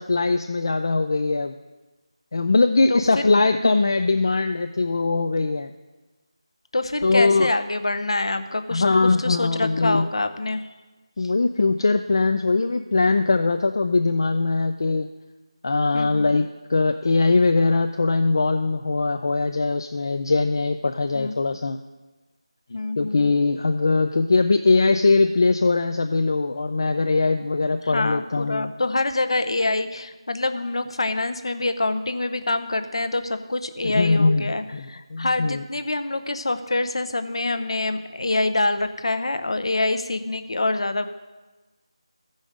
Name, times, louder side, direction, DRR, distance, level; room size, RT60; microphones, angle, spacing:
voice 1, 0.0-1.5 2.3-5.7 7.0-7.5 8.7-10.1 11.2-15.1 15.6-21.8 23.0-28.7 33.8-34.4 34.7-35.6, left 3 dB, 45° left, 7 dB, 0.4 m, -21 dB
voice 2, 2.9-3.2 6.7-8.8 9.2-10.6 11.2-11.3 15.9-16.3 21.1-21.3 22.7-23.3 27.8-41.1, left 2 dB, 60° left, 9 dB, 0.8 m, -26 dB
14.5 x 5.2 x 5.1 m, 1.2 s
figure-of-eight pair, 170°, 3 cm